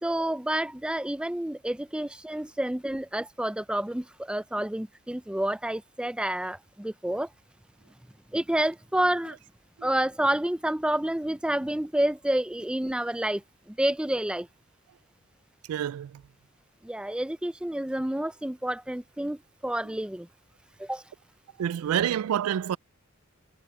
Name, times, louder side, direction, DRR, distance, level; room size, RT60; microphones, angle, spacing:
voice 1, 0.0-7.3 8.3-9.4 9.8-13.4 13.7-14.5 16.8-20.3 20.8-21.0, right 1 dB, 5° right, 0.4 m, -29 dB
voice 2, 15.7-16.2 21.6-22.8, right 9 dB, 85° right, 0.3 m, -28 dB
head